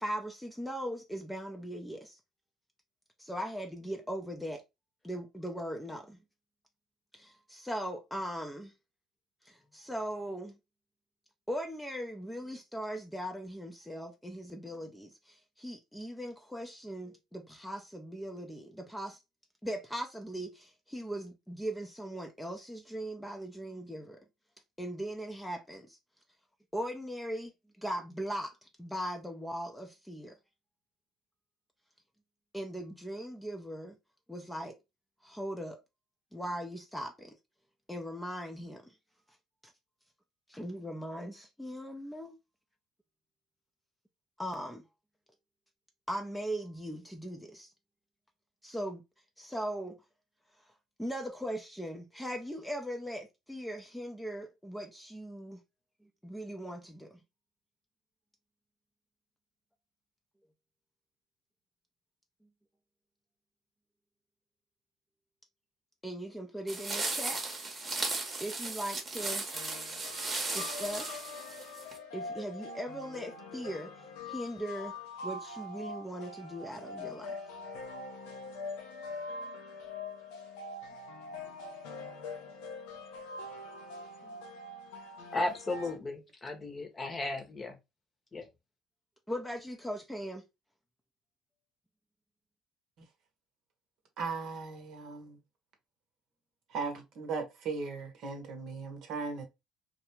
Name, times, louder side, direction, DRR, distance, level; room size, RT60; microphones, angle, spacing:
voice 1, 0.0-2.2 3.2-4.6 5.0-6.2 7.1-8.7 9.4-10.6 11.5-19.2 19.6-24.2 24.8-26.0 26.7-27.5 27.8-30.4 32.5-34.0 34.3-34.8 35.2-35.8 36.3-37.4 37.9-38.9 39.6-39.7 40.5-42.4 44.4-44.8 46.1-47.7 48.6-49.0 49.4-50.0 51.0-55.6 56.0-57.2 66.0-67.4 68.4-69.4 70.5-71.2 72.1-73.9 74.3-74.9 75.2-77.4 84.2-84.3 89.3-90.4, equal, 5° left, 0.4 m, -39 dB
sound 1, 66.7-72.0, right 3 dB, 30° right, 0.8 m, -36 dB
sound 2, 69.5-86.0, left 3 dB, 80° left, 0.6 m, -43 dB
voice 2, 85.3-87.8 88.3-88.5, left 2 dB, 30° left, 0.8 m, -35 dB
voice 3, 94.2-95.4 96.7-99.4, right 4 dB, 65° right, 0.7 m, -37 dB
2.3 x 2.0 x 2.9 m
hypercardioid pair, 70°, 0 cm